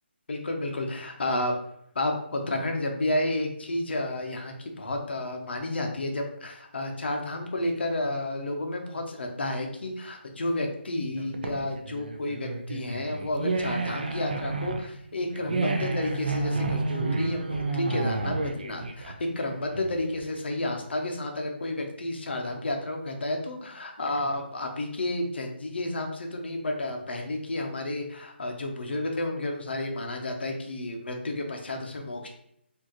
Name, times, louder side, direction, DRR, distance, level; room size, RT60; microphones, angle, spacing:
voice 1, 0.3-1.6 1.9-32.3, left 1 dB, 65° left, 3 dB, 0.9 m, -31 dB
sound 1, 11.2-20.2, right 3 dB, 50° right, 0.5 m, -31 dB
4.6 x 2.8 x 3.0 m, 0.75 s
hypercardioid pair, 175°, 6 cm